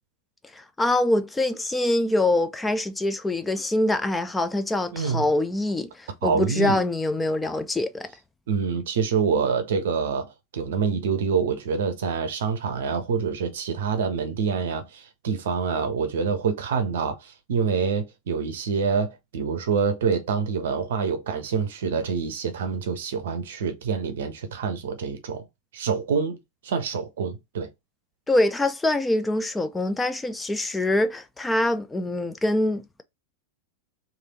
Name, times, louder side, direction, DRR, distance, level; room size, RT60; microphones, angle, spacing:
voice 1, 0.5-8.1 28.3-33.0, left 1 dB, 10° left, 0.4 m, -24 dB
voice 2, 4.9-5.2 6.2-6.8 8.5-25.5 25.7-27.7, right 6 dB, 60° right, 0.6 m, -26 dB
3.3 x 2.6 x 3.9 m
figure-of-eight pair, 90°, 0 cm